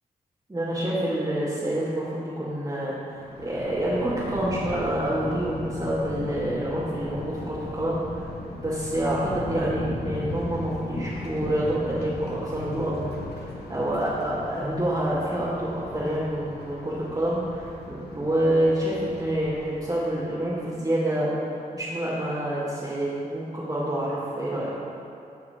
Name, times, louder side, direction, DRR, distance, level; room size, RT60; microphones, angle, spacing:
voice 1, 0.5-8.2 8.5-21.3 21.7-24.7, right 1 dB, 25° right, -10 dB, 2.1 m, -27 dB
Thunder, 3.2-20.5, left 2 dB, 85° left, 0.9 m, -37 dB
12.5 x 4.8 x 4.5 m, 2.6 s
cardioid pair, 55°, 16 cm